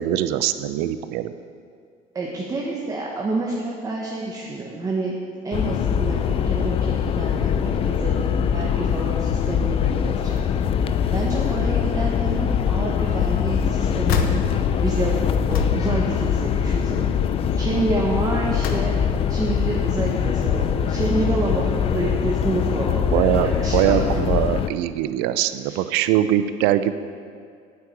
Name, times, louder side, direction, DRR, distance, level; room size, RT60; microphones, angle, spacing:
voice 1, 0.0-1.3 23.1-26.9, right 12 dB, 85° right, 12 dB, 0.6 m, -22 dB
voice 2, 2.1-5.2 5.4-8.2 8.5-10.4 11.1-17.1 17.5-18.9 19.3-24.0 25.6-25.8, right 3 dB, 20° right, -3 dB, 1.5 m, -28 dB
sound 1, 5.5-24.7, left 8 dB, 35° left, 0.6 m, -23 dB
sound 2, 12.5-12.8 13.2-16.9 17.3-17.6 18.1-19.4 19.9-20.8 21.5-21.7 21.9-22.0, left 7 dB, 65° left, 1.2 m, -30 dB
9.6 x 8.5 x 8.2 m, 2.3 s
cardioid pair, 140°, 16 cm